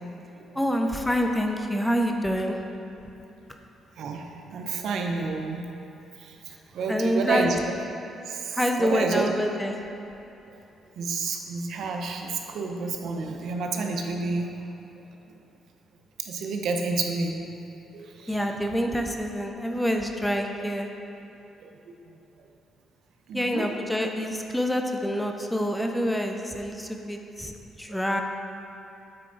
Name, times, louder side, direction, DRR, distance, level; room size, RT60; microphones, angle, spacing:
voice 1, 0.5-2.6 6.9-7.6 8.5-9.8 18.3-20.9 23.3-28.2, equal, 5° left, 3 dB, 0.6 m, -27 dB
voice 2, 4.0-5.6 6.2-7.6 8.3-9.3 11.0-14.5 15.3-15.4 16.2-17.4 17.9-18.4 21.6-21.9 23.3-23.7, right 4 dB, 70° right, 3 dB, 0.6 m, -30 dB
8.6 x 4.3 x 3.9 m, 2.8 s
cardioid pair, 90°, 0 cm